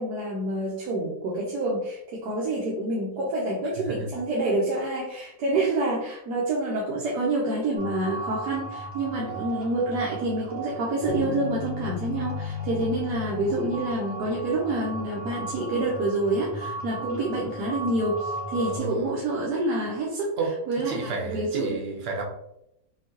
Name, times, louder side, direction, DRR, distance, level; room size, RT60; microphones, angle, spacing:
voice 1, 0.0-20.4 20.7-21.7, right 2 dB, 65° right, -3 dB, 1.2 m, -27 dB
sound 1, 7.8-18.8, right 3 dB, 5° right, 1.0 m, -37 dB
voice 2, 9.1-9.4 18.6-19.2 20.4-20.5 20.8-22.2, right 4 dB, 80° right, 0 dB, 0.5 m, -32 dB
sound 2, 11.1-15.3, left 7 dB, 75° left, 1.4 m, -36 dB
5.7 x 2.3 x 2.9 m, 0.82 s
omnidirectional pair, 2.0 m